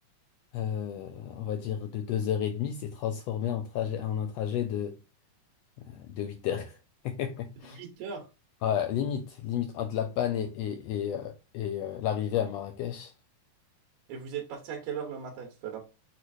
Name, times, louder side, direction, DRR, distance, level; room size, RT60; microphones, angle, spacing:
voice 1, 0.5-5.0 5.9-6.8 7.0-7.8 8.6-13.1, left 9 dB, 85° left, 1.4 m, -31 dB
voice 2, 7.6-8.3 14.1-15.8, right 7 dB, 75° right, 2.2 m, -38 dB
6.4 x 3.1 x 2.5 m
omnidirectional pair, 3.5 m